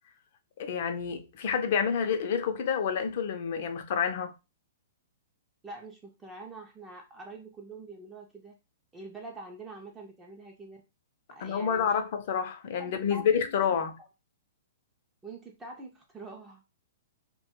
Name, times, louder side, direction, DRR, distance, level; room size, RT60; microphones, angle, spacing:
voice 1, 0.6-4.3 11.4-13.9, left 7 dB, 55° left, 0.5 m, -28 dB
voice 2, 5.6-8.5 8.9-10.8 11.3-12.0 12.8-13.8 15.2-16.6, right 2 dB, 15° right, 0.4 m, -45 dB
2.2 x 2.2 x 2.9 m
hypercardioid pair, 135°, 0 cm